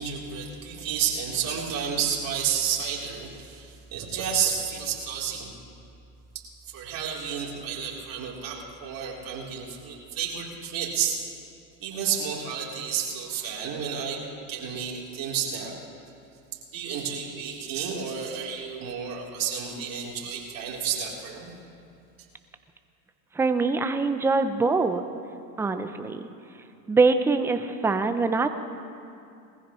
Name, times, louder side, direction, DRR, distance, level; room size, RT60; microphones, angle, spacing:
voice 1, 0.0-5.5 6.7-11.2 11.8-14.2 14.5-15.7 16.7-21.5, right 7 dB, 40° right, -3 dB, 3.5 m, -31 dB
voice 2, 23.4-25.0 25.6-26.3 26.9-28.5, right 3 dB, 5° right, 8 dB, 0.4 m, -23 dB
21.0 x 15.0 x 3.1 m, 2.6 s
hypercardioid pair, 100°, 50 cm